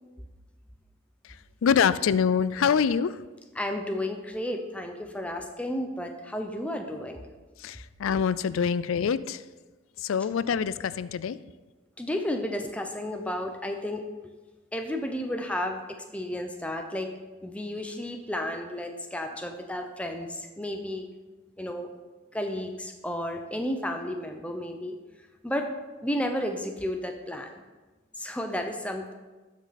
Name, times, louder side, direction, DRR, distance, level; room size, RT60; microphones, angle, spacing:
voice 1, 1.6-3.2 7.6-9.4 10.0-11.4, left 7 dB, 75° left, 16 dB, 0.4 m, -25 dB
voice 2, 3.6-7.2 12.0-14.3 14.7-17.1 17.4-21.1 21.6-21.9 22.3-25.0 25.4-25.7 26.0-27.5 28.2-29.1, left 1 dB, 5° left, 4 dB, 0.6 m, -32 dB
12.5 x 5.2 x 4.2 m, 1.2 s
head